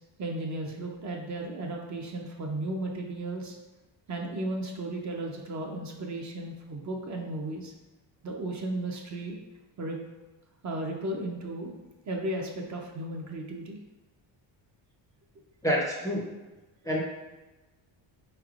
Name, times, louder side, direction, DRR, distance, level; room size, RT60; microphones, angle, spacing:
voice 1, 0.2-3.6 4.1-7.7 8.2-9.4 9.8-10.0 10.6-11.7 12.1-13.8, right 1 dB, 40° right, 0 dB, 0.6 m, -35 dB
voice 2, 15.6-16.3 16.8-17.0, equal, 10° left, -3 dB, 0.5 m, -27 dB
4.2 x 3.3 x 2.4 m, 1.1 s
cardioid pair, 105°, 45 cm